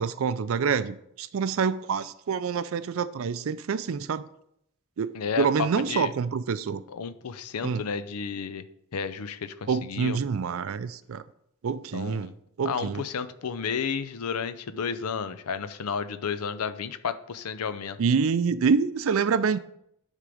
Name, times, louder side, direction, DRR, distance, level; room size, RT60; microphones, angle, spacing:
voice 1, 0.0-4.2 5.0-6.8 7.6-7.8 9.7-11.2 11.6-12.3 12.6-13.0 18.0-19.6, right 5 dB, 65° right, 0.4 m, -26 dB
voice 2, 5.1-6.1 6.9-8.7 8.9-10.2 11.9-12.3 12.6-18.0, left 6 dB, 85° left, 0.5 m, -32 dB
9.8 x 3.7 x 4.9 m
head